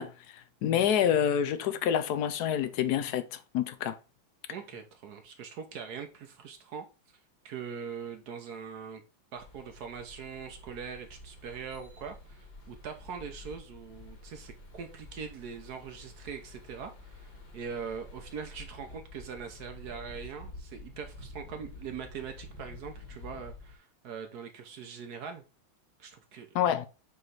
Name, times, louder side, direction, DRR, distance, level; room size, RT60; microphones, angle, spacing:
voice 1, 0.0-4.0 26.5-26.9, left 9 dB, 75° left, 0.9 m, -28 dB
voice 2, 4.5-6.9 7.4-9.0 9.3-25.4 26.0-26.6, right 6 dB, 60° right, 1.1 m, -42 dB
sound 1, 9.4-23.8, left 2 dB, 50° left, 2.2 m, -49 dB
7.7 x 3.2 x 3.9 m
omnidirectional pair, 2.2 m